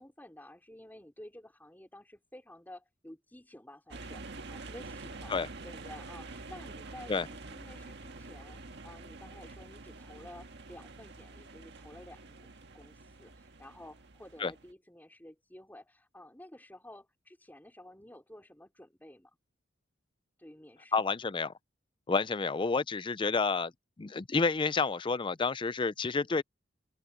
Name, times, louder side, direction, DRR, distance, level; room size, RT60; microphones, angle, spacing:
voice 1, 0.0-4.2 4.5-5.4 5.6-19.3 20.4-21.0, left 1 dB, 10° left, 3.9 m, -52 dB
sound 1, 3.9-14.7, right 3 dB, 65° right, 1.7 m, -47 dB
voice 2, 20.9-21.5 22.1-23.7 24.0-26.4, left 4 dB, 25° left, 0.4 m, -29 dB
open air
head